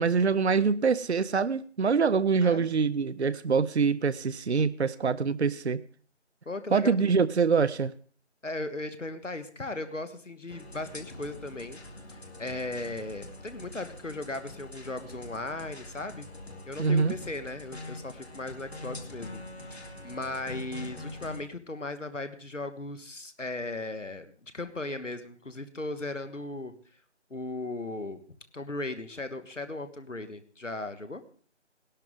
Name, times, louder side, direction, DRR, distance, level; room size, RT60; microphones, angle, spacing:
voice 1, 0.0-5.8 6.7-7.9 16.8-17.1, right 5 dB, 65° right, 0.6 m, -25 dB
voice 2, 6.4-6.9 8.4-11.8 12.1-16.3 16.6-19.4 19.7-26.7 27.3-28.2 28.5-31.2, left 2 dB, 85° left, 1.6 m, -37 dB
sound 1, 10.5-21.4, left 2 dB, 60° left, 2.2 m, -44 dB
17.5 x 12.0 x 3.8 m
figure-of-eight pair, 165°, 36 cm